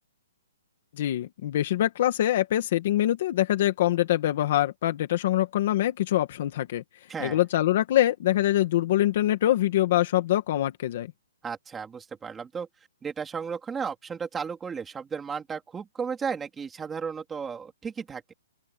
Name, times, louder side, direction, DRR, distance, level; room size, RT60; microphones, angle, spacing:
voice 1, 1.0-6.8 7.2-11.1, left 13 dB, 30° left, 1.7 m, -24 dB
voice 2, 11.4-12.7 13.0-18.3, right 6 dB, 5° right, 3.5 m, -34 dB
open air
hypercardioid pair, 180°, 0 cm